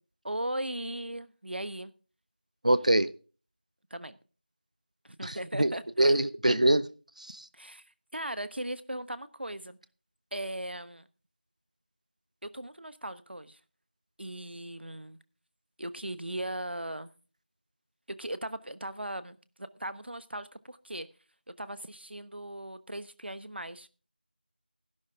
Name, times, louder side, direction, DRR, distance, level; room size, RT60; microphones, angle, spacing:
voice 1, 0.2-1.9 3.9-4.2 5.0-6.2 7.5-9.8 10.3-11.1 12.4-13.6 14.2-15.2 15.8-17.1 18.1-21.1 21.5-23.9, right 1 dB, 85° right, 1.1 m, -38 dB
voice 2, 2.6-3.1 5.2-6.9 7.2-7.5, right 1 dB, 45° right, 0.7 m, -25 dB
12.5 x 11.5 x 3.7 m
figure-of-eight pair, 180°, 6 cm